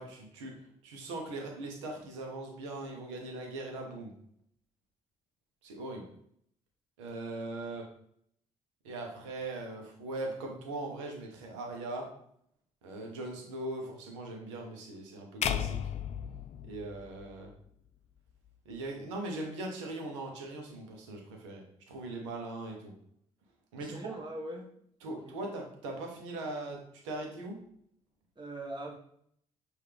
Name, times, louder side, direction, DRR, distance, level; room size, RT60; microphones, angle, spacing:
voice 1, 0.0-4.1 5.6-6.1 7.0-7.9 8.8-12.1 12.8-15.8 16.6-17.5 18.6-22.9 23.7-24.1 25.0-27.6, right 2 dB, 90° right, 1 dB, 0.9 m, -40 dB
sound 1, 15.4-17.7, left 9 dB, 45° left, 0.4 m, -35 dB
voice 2, 23.8-24.7 25.0-25.4 28.3-28.9, right 1 dB, 30° right, 0 dB, 1.5 m, -41 dB
5.7 x 2.7 x 3.3 m, 0.68 s
hypercardioid pair, 50°, 15 cm